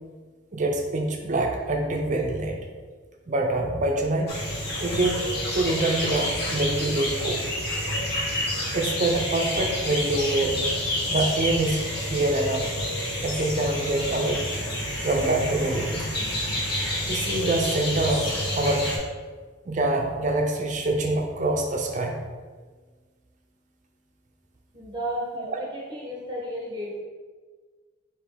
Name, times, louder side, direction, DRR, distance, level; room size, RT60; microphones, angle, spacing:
voice 1, 0.5-2.6 3.3-4.3 4.8-5.2 5.5-7.4 8.7-10.7 11.1-12.7 13.2-14.4 15.0-16.1 17.1-18.9 19.7-22.2 25.4-25.5, right 2 dB, 40° right, 2 dB, 0.5 m, -25 dB
sound 1, 4.3-19.0, left 1 dB, 55° left, 1.1 m, -29 dB
voice 2, 24.7-27.0, equal, 20° right, -4 dB, 1.1 m, -33 dB
4.8 x 2.9 x 3.4 m, 1.5 s
head